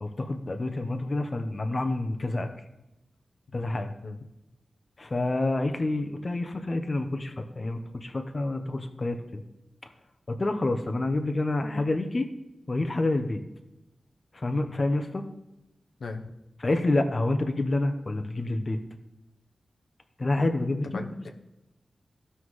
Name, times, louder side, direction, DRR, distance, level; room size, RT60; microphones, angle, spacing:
voice 1, 0.0-2.5 3.5-3.9 5.0-9.4 10.3-12.3 12.7-13.4 14.3-15.2 16.6-18.8 20.2-21.3, left 2 dB, 40° left, 6 dB, 0.8 m, -28 dB
voice 2, 3.5-4.2 16.0-16.3 20.9-21.3, left 3 dB, 85° left, 3 dB, 0.7 m, -39 dB
15.5 x 5.6 x 3.2 m, 0.95 s
wide cardioid pair, 95°, 0 cm